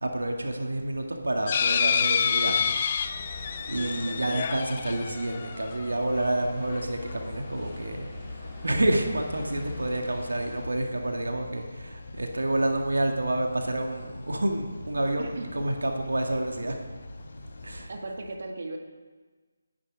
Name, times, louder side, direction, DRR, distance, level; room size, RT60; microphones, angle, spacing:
voice 1, 0.0-2.7 3.3-8.1 8.4-16.8 17.6-17.9, right 1 dB, 70° right, 3 dB, 2.1 m, -29 dB
sound 1, 1.5-6.1 6.7-6.8 7.1-7.2, left 7 dB, 35° left, 0.8 m, -28 dB
sound 2, 3.0-10.6, left 2 dB, 15° left, 5.0 m, -43 dB
voice 2, 3.7-4.4 15.2-15.5 17.9-18.8, right 2 dB, 55° right, 3 dB, 1.9 m, -37 dB
sound 3, 6.0-17.9, left 2 dB, 50° left, 2.4 m, -45 dB
20.5 x 10.0 x 5.0 m, 1.4 s
figure-of-eight pair, 155°, 0 cm